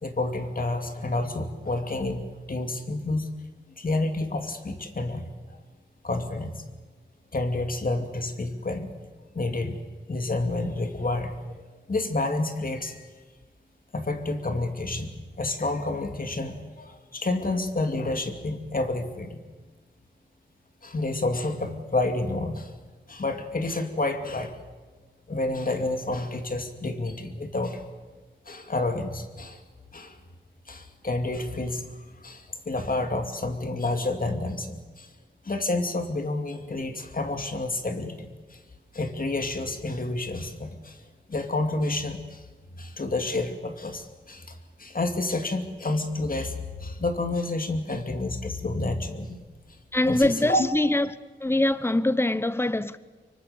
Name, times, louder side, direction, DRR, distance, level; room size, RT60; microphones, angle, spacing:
voice 1, 0.0-3.3 3.8-5.3 6.0-6.6 7.3-8.9 9.3-9.8 10.1-13.1 13.9-15.1 15.4-19.4 20.8-22.7 23.1-24.6 25.3-27.8 28.5-29.6 29.9-30.2 30.7-31.9 32.2-35.1 35.4-38.6 38.9-41.0 41.3-42.5 42.8-49.4 50.0-50.7, left 2 dB, 45° left, 2.5 m, -29 dB
voice 2, 49.9-51.1 51.4-53.0, left 1 dB, 10° left, 0.8 m, -23 dB
25.5 x 23.5 x 7.0 m
wide cardioid pair, 100°, 20 cm